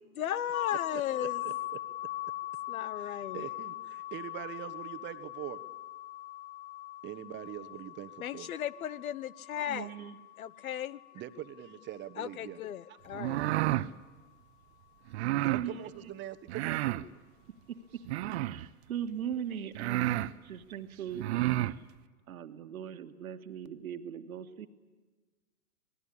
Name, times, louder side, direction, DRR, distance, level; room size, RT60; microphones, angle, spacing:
voice 1, 0.2-1.4 2.7-3.5 8.2-9.9 10.4-11.0 12.2-13.4, left 10 dB, 70° left, 20 dB, 1.1 m, -36 dB
sound 1, 0.5-12.3, left 17 dB, 35° left, 0.8 m, -41 dB
voice 2, 0.9-2.1 3.0-5.6 7.0-8.5 11.1-12.6 12.9-13.0 15.2-17.1, right 12 dB, 25° right, 11 dB, 1.2 m, -43 dB
voice 3, 9.6-10.2 15.5-16.1 17.5-21.8 22.3-24.7, right 9 dB, 70° right, 7 dB, 1.9 m, -40 dB
sound 2, 13.1-13.9 15.1-15.7 16.5-17.1 18.1-18.7 19.3-19.4 19.8-20.3 21.1-21.8, right 16 dB, 45° right, 0.9 m, -30 dB
26.0 x 19.5 x 8.6 m, 1.3 s
hypercardioid pair, 115°, 44 cm